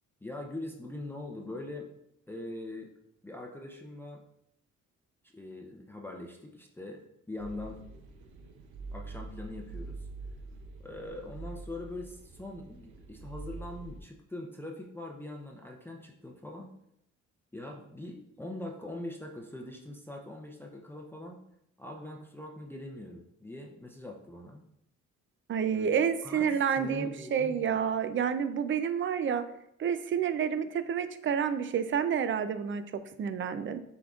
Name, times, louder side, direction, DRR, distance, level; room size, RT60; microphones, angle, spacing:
voice 1, 0.2-1.9 2.3-2.9 3.2-4.2 5.2-7.8 8.9-10.1 10.8-16.7 17.5-21.4 21.8-24.6 25.7-26.5 26.8-27.8, left 1 dB, 5° left, 0 dB, 0.5 m, -42 dB
sound 1, 7.4-14.0, right 3 dB, 90° right, 0.7 m, -45 dB
voice 2, 25.5-29.4 29.8-33.8, right 7 dB, 40° right, 11 dB, 0.4 m, -29 dB
6.1 x 3.6 x 2.4 m, 0.76 s
cardioid pair, 90°, 30 cm